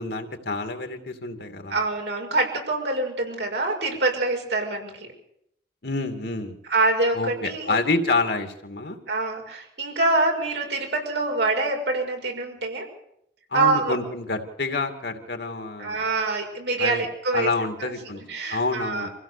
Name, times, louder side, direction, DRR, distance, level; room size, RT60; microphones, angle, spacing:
voice 1, 0.0-1.7 5.8-6.6 7.1-9.0 13.5-16.0 16.8-17.1 17.3-18.2 18.5-19.1, left 3 dB, 65° left, 5 dB, 2.7 m, -28 dB
voice 2, 1.7-5.1 6.7-7.8 9.1-12.9 13.5-14.0 15.8-17.5 17.8-17.9 18.3-19.1, right 2 dB, 80° right, 1 dB, 6.5 m, -25 dB
26.0 x 16.0 x 6.9 m, 0.73 s
head